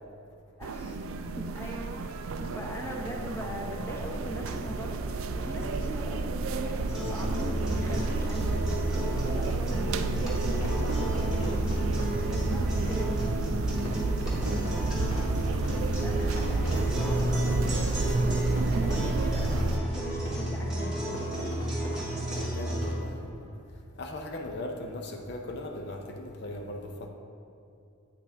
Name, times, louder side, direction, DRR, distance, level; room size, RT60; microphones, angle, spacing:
voice 1, 0.6-1.0 1.4-8.6 8.9-11.5 12.3-13.4 15.7-21.1, equal, 15° left, -1 dB, 0.7 m, -40 dB
sound 1, 0.6-19.8, right 3 dB, 85° right, 0.4 m, -30 dB
sound 2, 6.9-22.9, equal, 5° right, 1.4 m, -32 dB
Fireworks, 10.6-23.3, equal, 70° left, 1.7 m, -41 dB
voice 2, 14.4-14.9 22.3-23.2 24.0-27.1, left 1 dB, 55° left, 3 dB, 0.5 m, -38 dB
8.5 x 5.8 x 3.4 m, 2.7 s
head